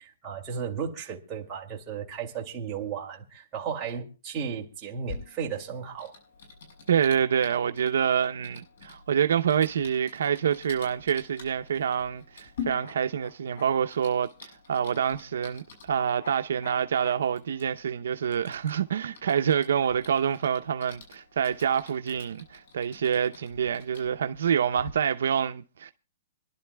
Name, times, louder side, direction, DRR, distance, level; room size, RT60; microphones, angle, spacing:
voice 1, 0.0-6.1, right 7 dB, 15° right, 2.3 m, -35 dB
Typing, 5.0-24.9, left 6 dB, 65° left, 7.0 m, -47 dB
voice 2, 6.9-25.9, right 8 dB, 75° right, 0.7 m, -27 dB
27.0 x 11.5 x 2.2 m
hypercardioid pair, 170°, 0 cm